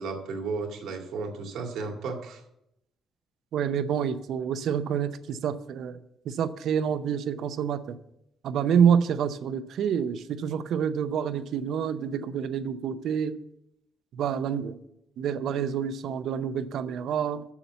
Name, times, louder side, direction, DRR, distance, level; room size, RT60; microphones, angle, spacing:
voice 1, 0.0-2.4, right 4 dB, 75° right, 2 dB, 2.1 m, -34 dB
voice 2, 3.5-6.0 6.2-8.0 8.4-13.4 14.1-14.8 15.2-17.5, right 8 dB, 60° right, 12 dB, 0.7 m, -27 dB
7.2 x 7.1 x 8.0 m, 0.80 s
cardioid pair, 170°, 0 cm